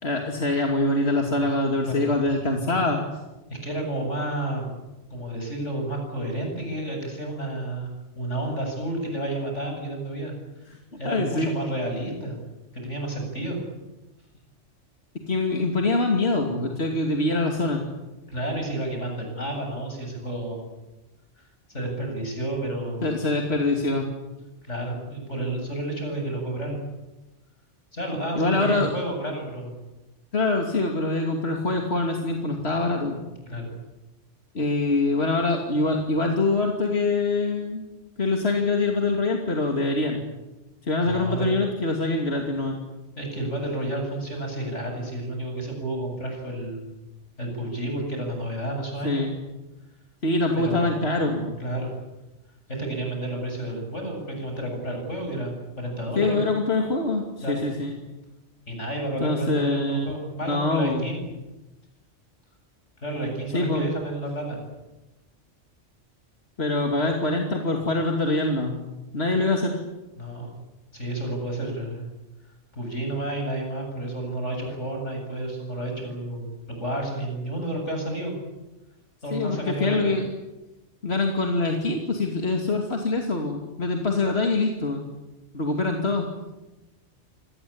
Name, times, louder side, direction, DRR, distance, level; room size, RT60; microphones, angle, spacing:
voice 1, 0.0-3.0 11.0-11.5 15.3-17.8 23.0-24.1 28.3-28.9 30.3-33.2 34.5-37.9 38.2-40.2 40.8-42.8 49.0-49.3 50.2-51.6 56.2-58.0 59.2-60.1 60.4-61.1 63.5-63.8 66.6-68.8 69.1-69.8 79.3-80.3 81.0-85.1 85.5-86.3, left 2 dB, 60° left, 1 dB, 3.0 m, -24 dB
voice 2, 3.5-4.7 5.1-7.9 8.1-10.3 11.0-12.4 12.7-13.6 18.3-20.7 21.7-23.0 24.6-26.8 27.9-29.8 33.5-33.7 41.0-41.6 43.2-46.9 47.4-49.3 50.5-50.9 51.6-51.9 52.7-56.4 57.4-57.6 58.7-61.2 63.0-64.6 70.2-70.5 70.9-72.0 72.7-78.4 79.2-80.1, right 1 dB, 85° left, 3 dB, 8.2 m, -31 dB
26.5 x 20.0 x 8.8 m, 1.0 s
omnidirectional pair, 1.2 m